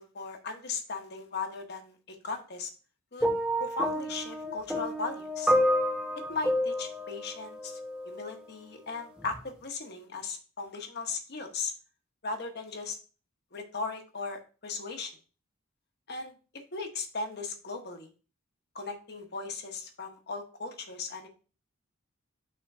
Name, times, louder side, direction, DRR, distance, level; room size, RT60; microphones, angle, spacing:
voice 1, 0.0-2.7 3.1-3.3 3.6-5.5 6.3-7.8 8.0-11.7 12.2-13.0 13.5-15.1 16.1-16.3 16.7-18.1 18.7-21.3, left 4 dB, 50° left, 4 dB, 1.0 m, -37 dB
sound 1, 3.2-8.3 9.2-9.4, equal, 5° right, 0.7 m, -29 dB
5.7 x 3.8 x 4.8 m, 0.36 s
head